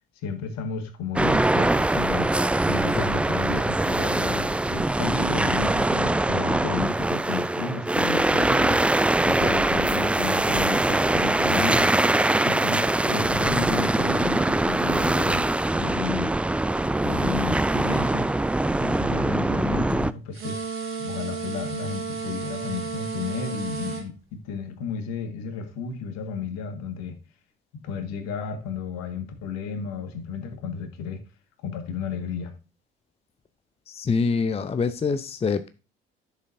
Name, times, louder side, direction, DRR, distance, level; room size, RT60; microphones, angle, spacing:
voice 1, 0.2-2.3 2.7-8.8 9.3-11.9 12.5-16.3 17.0-18.3 18.8-20.6 21.0-27.2 27.8-31.2 31.6-32.5, left 5 dB, 60° left, 1.8 m, -33 dB
sound 1, 1.2-20.1, right 2 dB, 5° right, 0.3 m, -23 dB
sound 2, 20.3-24.0, right 5 dB, 45° right, 3.2 m, -32 dB
voice 2, 33.9-35.7, left 5 dB, 20° left, 0.7 m, -25 dB
11.0 x 6.6 x 2.7 m
figure-of-eight pair, 55°, 30 cm